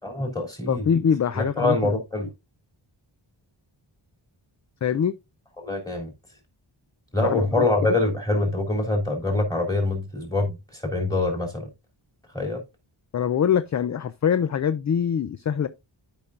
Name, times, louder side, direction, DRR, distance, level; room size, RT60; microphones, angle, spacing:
voice 1, 0.0-0.8 1.3-2.3 5.6-6.1 7.1-11.7 12.3-12.6, left 2 dB, 10° left, 3.2 m, -25 dB
voice 2, 0.7-1.9 4.8-5.2 7.2-7.9 13.1-15.7, left 8 dB, 40° left, 0.4 m, -24 dB
13.0 x 5.4 x 2.4 m
wide cardioid pair, 110°, 46 cm